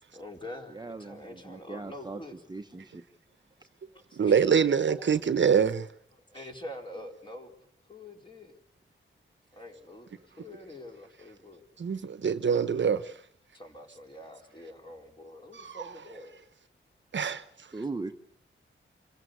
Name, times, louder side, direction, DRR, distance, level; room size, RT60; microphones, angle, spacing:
voice 1, 0.1-2.4 4.1-5.0 6.1-7.5 7.9-8.6 9.5-11.6 13.5-16.3, left 1 dB, 25° left, 4.4 m, -45 dB
voice 2, 0.7-2.2 2.5-3.0 17.7-18.1, right 3 dB, 20° right, 1.0 m, -39 dB
voice 3, 4.2-5.9 11.8-13.1 15.5-15.8 17.1-17.4, right 7 dB, 65° right, 1.0 m, -25 dB
26.5 x 15.5 x 8.2 m
wide cardioid pair, 85°, 21 cm